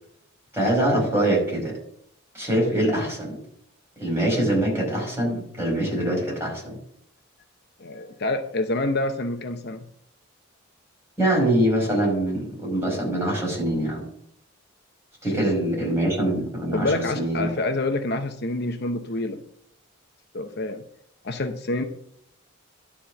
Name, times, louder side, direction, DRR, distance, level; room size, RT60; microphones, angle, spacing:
voice 1, 0.5-1.8 2.3-3.3 4.0-6.8 11.2-14.1 15.2-17.5, right 1 dB, 15° right, -3 dB, 5.3 m, -24 dB
voice 2, 7.8-9.9 16.7-19.4 20.3-20.8 21.2-21.8, left 2 dB, 55° left, 7 dB, 0.8 m, -27 dB
11.5 x 4.3 x 7.6 m, 0.68 s
head